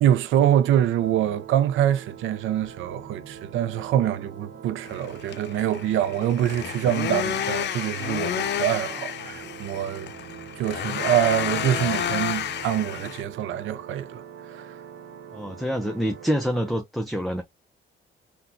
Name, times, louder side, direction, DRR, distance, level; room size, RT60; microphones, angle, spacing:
voice 1, 0.0-10.1 10.6-14.2 14.5-14.8, right 11 dB, 85° right, 0.5 m, -25 dB
sound 1, 1.0-16.8, right 8 dB, 60° right, 1.1 m, -43 dB
sound 2, 4.8-13.2, left 9 dB, 60° left, 0.6 m, -31 dB
voice 2, 15.3-17.4, equal, ahead, 0.6 m, -26 dB
3.8 x 2.3 x 2.6 m
cardioid pair, 90°, 20 cm